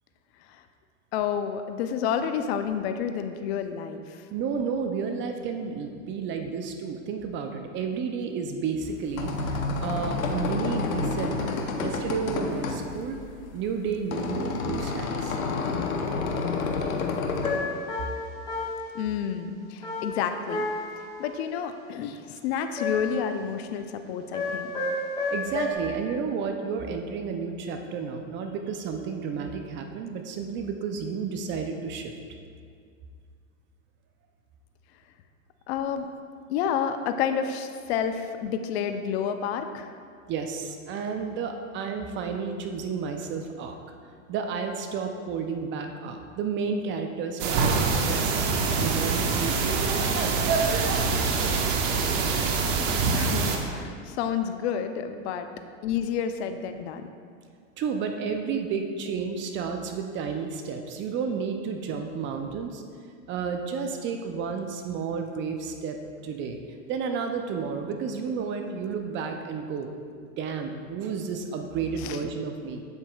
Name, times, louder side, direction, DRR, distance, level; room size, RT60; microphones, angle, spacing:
voice 1, 1.1-4.3 18.9-20.7 21.2-24.7 35.7-36.1 36.5-39.9 53.1-55.5 55.8-57.1 72.0-72.2, left 8 dB, 50° left, 8 dB, 0.6 m, -30 dB
voice 2, 4.3-13.2 13.5-15.4 20.9-21.4 25.3-32.1 40.3-43.8 44.3-50.1 57.8-62.8 63.3-66.6 66.9-69.9 70.2-72.9, right 5 dB, 30° right, 5 dB, 0.5 m, -32 dB
sound 1, 8.9-17.6, left 4 dB, 90° left, 0.9 m, -29 dB
sound 2, 17.4-19.0 19.8-21.1 22.8-23.3 24.3-25.7, left 2 dB, 10° left, 1.3 m, -31 dB
sound 3, 47.4-53.6, right 4 dB, 50° right, 1.1 m, -24 dB
8.1 x 7.7 x 2.3 m, 2.1 s
hypercardioid pair, 115°, 40 cm